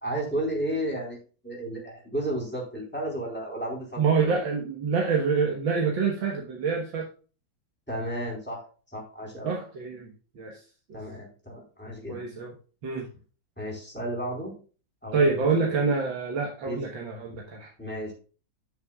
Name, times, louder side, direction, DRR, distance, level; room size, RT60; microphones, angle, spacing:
voice 1, 0.0-1.2 1.4-4.3 7.9-8.6 8.9-9.5 10.9-12.2 13.6-14.5 15.0-15.9 16.6-16.8 17.8-18.1, right 1 dB, 5° left, -3 dB, 4.1 m, -33 dB
voice 2, 4.0-7.1 9.4-10.1 10.4-10.6 12.1-12.5 12.8-13.1 15.1-17.7, right 5 dB, 80° right, 0 dB, 2.1 m, -26 dB
13.5 x 6.6 x 2.4 m, 0.36 s
omnidirectional pair, 2.0 m